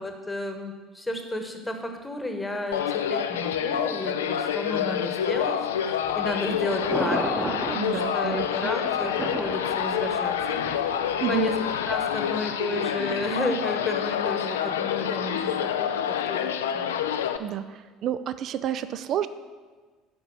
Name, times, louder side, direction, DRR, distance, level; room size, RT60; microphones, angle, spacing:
voice 1, 0.0-5.6 5.9-10.6 11.3-11.5 11.9-16.0 16.3-17.0, left 1 dB, 10° left, 5 dB, 1.1 m, -33 dB
sound 1, 2.7-17.4, left 9 dB, 75° left, 0.3 m, -27 dB
Thunder, 6.0-12.1, right 1 dB, 15° right, 0.9 m, -35 dB
voice 2, 7.6-8.7 11.2-11.5 17.4-19.3, right 10 dB, 50° right, 13 dB, 0.3 m, -30 dB
6.0 x 5.2 x 6.2 m, 1.4 s
figure-of-eight pair, 60°, 0 cm